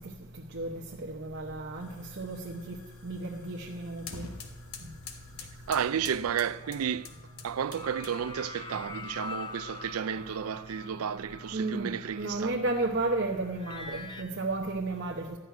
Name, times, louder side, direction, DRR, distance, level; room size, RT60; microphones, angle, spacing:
voice 1, 0.5-2.8 3.0-4.3 11.5-15.3, right 2 dB, 55° right, 0.9 m, -33 dB
sound 1, 1.7-8.4, left 5 dB, 85° left, 1.3 m, -48 dB
voice 2, 5.7-7.1 7.4-12.6, right 8 dB, 85° right, 0.4 m, -32 dB
sound 2, 6.4-14.2, left 3 dB, 20° left, 0.8 m, -45 dB
13.0 x 6.4 x 9.3 m
head